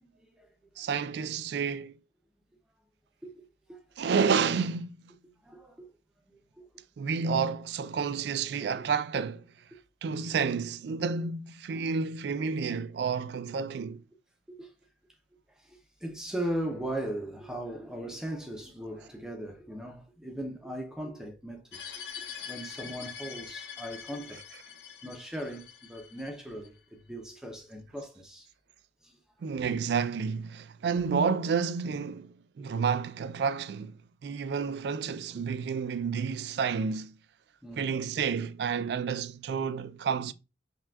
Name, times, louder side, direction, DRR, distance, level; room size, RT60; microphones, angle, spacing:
voice 1, 0.0-0.7 3.2-3.4 3.7-3.8 5.4-5.9 6.3-6.7 11.7-11.9 14.5-14.7 15.6-24.4 25.0-28.5 29.0-29.2 32.6-32.7 37.6-38.0, right 1 dB, 5° right, 0.5 m, -39 dB
voice 2, 0.8-2.0 4.0-5.2 7.0-9.5 10.0-14.0 22.4-22.5 29.4-37.1 37.8-40.3, right 6 dB, 60° right, 0.3 m, -30 dB
sound 1, 21.7-26.7, left 7 dB, 60° left, 0.5 m, -44 dB
5.7 x 2.3 x 2.3 m
head